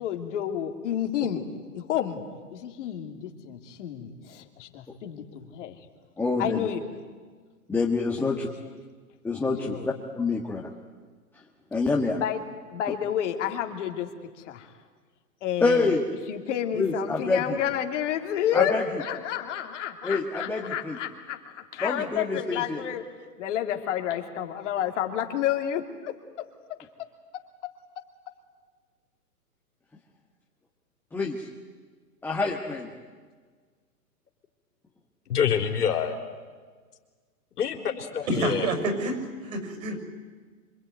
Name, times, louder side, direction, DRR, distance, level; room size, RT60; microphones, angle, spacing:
voice 1, 0.0-1.4 1.7-2.2 2.5-5.8 6.4-7.0 8.2-8.5 9.5-9.9 12.2-12.4 12.7-14.1 14.4-14.7 15.4-16.0 16.3-23.1 23.4-26.1 27.6-27.7, left 10 dB, 50° left, 4 dB, 2.8 m, -30 dB
voice 2, 6.2-6.7 7.7-8.5 9.2-10.7 11.7-12.2 15.6-16.0 16.8-17.6 18.5-19.0 20.0-21.0 21.8-22.8 31.1-31.4 32.2-32.9, left 3 dB, 5° left, -1 dB, 1.5 m, -27 dB
voice 3, 35.3-36.2 37.6-38.7, left 8 dB, 75° left, 4 dB, 4.2 m, -26 dB
voice 4, 38.3-40.0, right 2 dB, 60° right, 6 dB, 6.6 m, -28 dB
26.0 x 24.0 x 9.4 m, 1.5 s
hypercardioid pair, 145°, 47 cm